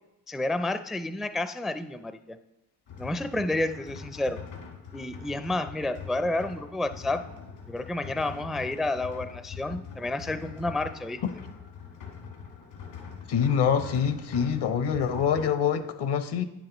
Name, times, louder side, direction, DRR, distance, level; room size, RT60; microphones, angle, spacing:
voice 1, 0.3-2.4 3.0-4.4 4.9-7.2 7.7-11.2, left 2 dB, ahead, 10 dB, 0.4 m, -30 dB
sound 1, 2.9-15.5, left 6 dB, 80° left, 1.9 m, -43 dB
voice 2, 13.3-16.4, left 7 dB, 65° left, 11 dB, 0.9 m, -25 dB
9.1 x 7.2 x 3.0 m, 0.89 s
supercardioid pair, 50°, 44 cm